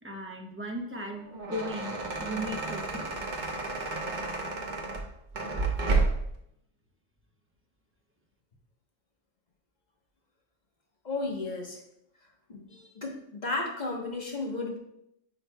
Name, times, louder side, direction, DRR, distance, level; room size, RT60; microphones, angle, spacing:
voice 1, 0.0-3.2, equal, 15° right, 1 dB, 0.6 m, -37 dB
sound 1, 1.1-6.4, right 3 dB, 40° right, 0.9 m, -31 dB
voice 2, 11.0-11.8 12.5-14.8, left 3 dB, 35° left, 0 dB, 1.1 m, -34 dB
9.1 x 4.9 x 2.2 m, 0.77 s
omnidirectional pair, 1.3 m